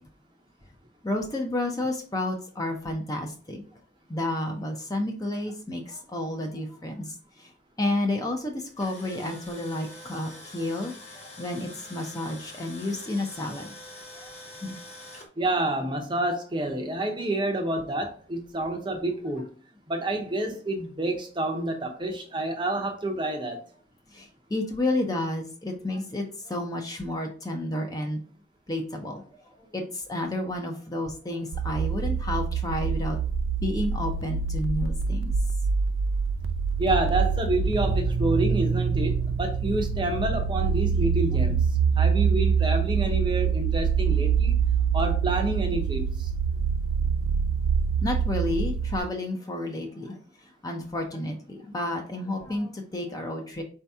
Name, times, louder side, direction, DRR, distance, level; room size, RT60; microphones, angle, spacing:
voice 1, 1.0-3.6 4.1-7.5 7.8-13.7 14.2-14.3 14.6-14.8 24.1-28.2 28.7-33.2 33.6-35.3 48.0-53.6, left 1 dB, 20° left, 0.5 m, -31 dB
Tools, 8.6-15.3, left 2 dB, 35° left, 1.1 m, -45 dB
voice 2, 15.4-19.5 19.9-23.6 36.8-41.6 42.0-44.5 44.9-46.3, right 1 dB, 25° right, 0.6 m, -28 dB
sound 1, 31.5-49.0, right 6 dB, 85° right, 0.4 m, -25 dB
4.5 x 2.7 x 3.4 m
head